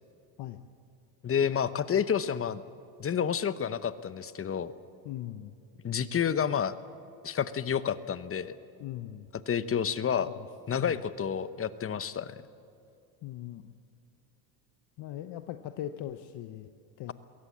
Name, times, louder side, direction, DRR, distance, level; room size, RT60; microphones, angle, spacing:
voice 1, 1.2-2.6 3.0-4.7 5.8-6.7 7.2-8.5 9.5-10.3 10.7-12.4, left 8 dB, 30° left, 14 dB, 0.9 m, -29 dB
voice 2, 5.0-5.5 8.8-9.3 10.2-10.5 10.7-11.0 13.2-13.7 15.0-16.7 17.0-17.1, left 12 dB, 55° left, 9 dB, 0.9 m, -40 dB
22.5 x 17.0 x 7.4 m, 2.6 s
supercardioid pair, 100°, 49 cm